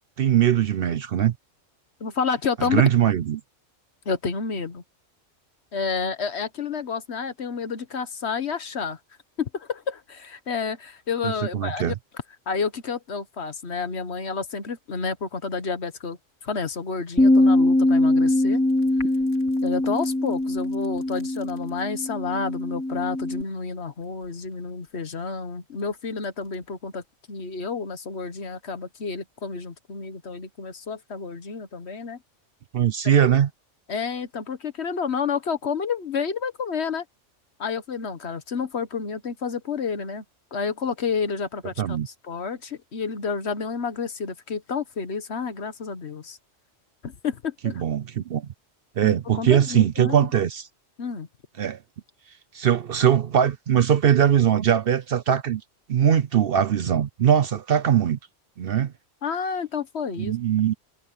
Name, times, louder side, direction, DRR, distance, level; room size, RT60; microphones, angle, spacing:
voice 1, 0.2-1.3 2.6-3.4 11.2-11.9 32.7-33.5 41.8-42.1 47.8-48.5 49.0-50.7 51.6-51.8 52.5-55.6 55.9-58.2 58.6-58.9 60.2-60.7, right 9 dB, 60° right, 0.7 m, -21 dB
voice 2, 2.0-2.8 4.0-4.8 5.7-9.0 9.4-11.9 12.5-16.2 16.4-18.6 19.6-27.0 27.3-32.2 33.0-33.2 33.9-37.0 37.6-40.2 40.5-46.4 47.0-47.8 49.0-50.3 51.0-51.3 59.2-60.3, left 5 dB, 60° left, 1.5 m, -30 dB
Bass guitar, 17.2-23.4, left 1 dB, 10° left, 0.6 m, -22 dB
sound 1, 18.7-21.8 22.5-27.4, left 4 dB, 75° left, 2.7 m, -48 dB
omnidirectional pair, 1.3 m